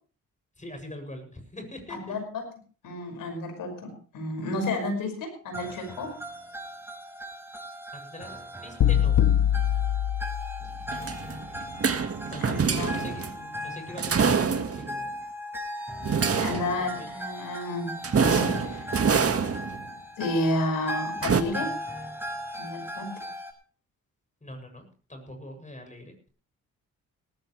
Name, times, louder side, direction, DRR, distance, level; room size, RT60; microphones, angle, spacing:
voice 1, 0.6-2.0 7.9-8.4 8.6-9.3 12.3-15.1 16.8-17.1 24.4-26.3, left 1 dB, 25° left, 5 dB, 7.3 m, -42 dB
voice 2, 1.9-2.2 2.8-6.1 12.4-13.0 16.4-17.9 18.2-18.9 20.2-21.7 22.6-23.1, left 1 dB, 85° left, 5 dB, 5.8 m, -31 dB
sound 1, 5.5-23.5, equal, 5° right, 5.4 m, -38 dB
sound 2, 8.8-10.9, left 10 dB, 65° left, 1.0 m, -23 dB
sound 3, 10.9-13.4 14.0-15.0 16.0-16.9 18.0-19.9 21.2-21.4, right 6 dB, 45° right, 1.8 m, -26 dB
18.5 x 15.0 x 3.3 m, 0.39 s
cardioid pair, 65°, 32 cm